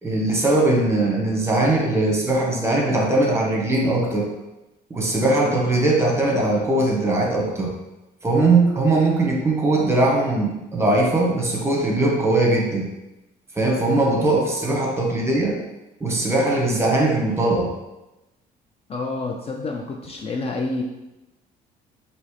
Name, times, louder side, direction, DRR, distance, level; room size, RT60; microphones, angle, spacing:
voice 1, 0.0-4.3 4.9-7.7 8.2-12.9 13.5-15.6 16.0-17.7, right 2 dB, 15° right, -1 dB, 1.1 m, -20 dB
voice 2, 18.9-20.8, left 3 dB, 35° left, 1 dB, 0.5 m, -28 dB
5.3 x 2.8 x 3.2 m, 0.97 s
cardioid pair, 110°, 17 cm